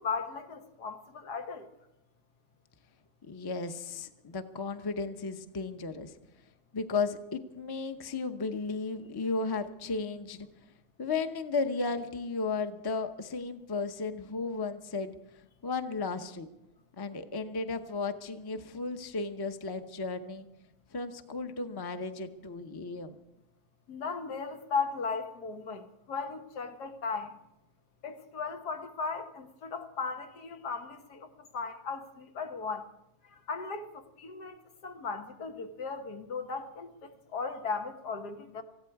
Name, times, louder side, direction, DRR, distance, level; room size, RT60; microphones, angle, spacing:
voice 1, 0.0-1.7 23.9-27.3 28.0-32.9 33.3-38.6, left 5 dB, 90° left, 1.9 m, -37 dB
voice 2, 3.2-6.1 6.7-10.5 11.0-15.1 15.6-16.5 17.0-20.4 20.9-23.2, left 4 dB, 25° left, 0.6 m, -34 dB
19.5 x 15.0 x 4.7 m
omnidirectional pair, 1.7 m